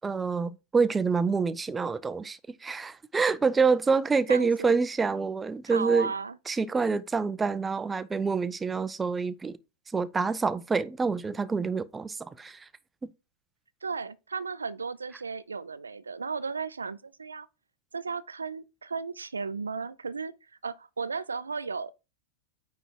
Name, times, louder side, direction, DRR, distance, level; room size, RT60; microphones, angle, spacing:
voice 1, 0.0-6.1 6.5-9.6 9.9-12.7, right 4 dB, 15° right, 0.4 m, -27 dB
voice 2, 4.3-4.8 5.7-6.4 13.8-17.5 17.9-20.3 20.6-21.9, right 5 dB, 75° right, 0.4 m, -35 dB
9.1 x 3.5 x 4.4 m
figure-of-eight pair, 90°, 0 cm